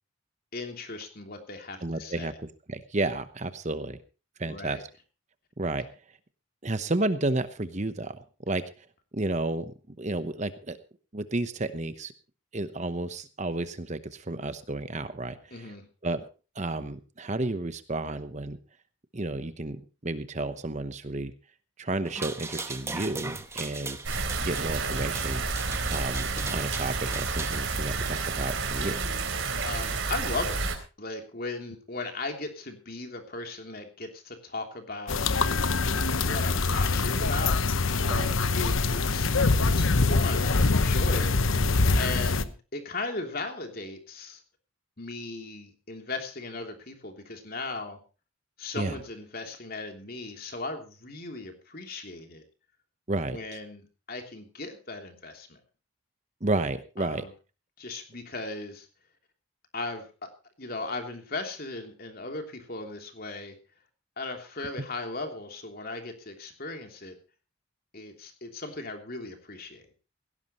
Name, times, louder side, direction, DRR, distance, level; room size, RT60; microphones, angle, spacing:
voice 1, 0.5-2.4 4.4-4.8 15.5-15.9 29.6-30.6 31.0-35.4 36.2-37.6 38.5-39.3 39.6-41.4 42.0-44.4 45.0-48.0 48.6-52.4 53.3-55.6 57.0-57.3 57.8-58.9 59.7-60.3 60.6-63.5 64.2-67.1 67.9-69.8, left 3 dB, 45° left, 4 dB, 3.1 m, -37 dB
voice 2, 1.8-2.3 2.7-4.0 4.4-4.8 5.6-5.9 6.6-8.2 8.5-8.6 9.1-10.8 11.1-12.1 12.5-15.4 16.0-16.2 16.6-18.6 19.1-21.3 21.8-24.0 24.3-25.4 25.9-29.0 38.1-38.4 48.8-49.0 53.1-53.4 56.4-57.2, right 2 dB, 35° right, 11 dB, 0.9 m, -31 dB
sound 1, 22.0-27.6, right 3 dB, 15° right, 1.1 m, -39 dB
sound 2, 24.0-30.7, right 4 dB, 65° right, 3.8 m, -30 dB
sound 3, 35.1-42.4, left 3 dB, 70° left, 1.0 m, -24 dB
17.5 x 16.5 x 3.0 m, 0.33 s
head